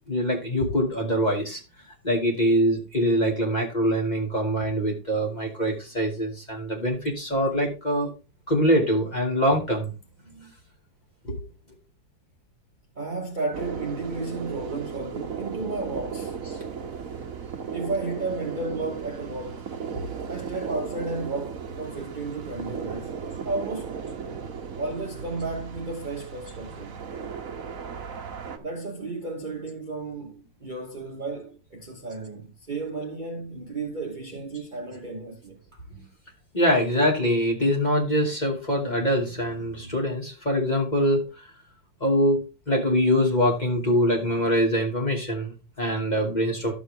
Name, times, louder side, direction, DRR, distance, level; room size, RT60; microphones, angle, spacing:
voice 1, 0.1-1.6 2.0-8.1 8.5-9.9 10.3-10.5 11.2-11.4 15.5-15.6 35.9-36.0 36.5-41.2 42.0-42.4 42.7-46.7, equal, 20° left, 2.7 m, -24 dB
voice 2, 13.0-16.4 17.7-19.7 20.3-23.2 23.4-24.0 24.8-27.0 28.6-35.8, right 3 dB, 30° right, 1.4 m, -33 dB
sound 1, 13.5-28.6, right 6 dB, 50° right, 1.4 m, -36 dB
12.0 x 7.1 x 3.5 m
omnidirectional pair, 2.0 m